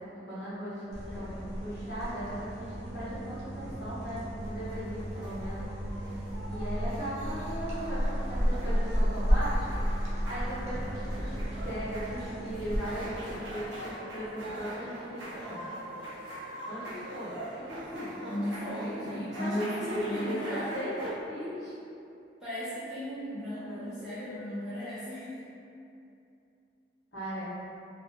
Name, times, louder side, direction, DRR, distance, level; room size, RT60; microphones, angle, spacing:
voice 1, 0.2-6.1 6.5-9.7 10.2-15.6 16.7-17.4 17.7-21.7 23.6-24.3 27.1-27.4, equal, 70° left, -11 dB, 1.0 m, -38 dB
sound 1, 0.9-12.8, equal, 35° right, 0.6 m, -32 dB
sound 2, 4.1-21.1, right 1 dB, 90° right, 0.7 m, -43 dB
voice 2, 18.2-20.7 22.4-25.5, equal, 5° right, -14 dB, 0.8 m, -36 dB
2.4 x 2.4 x 2.8 m, 2.6 s
head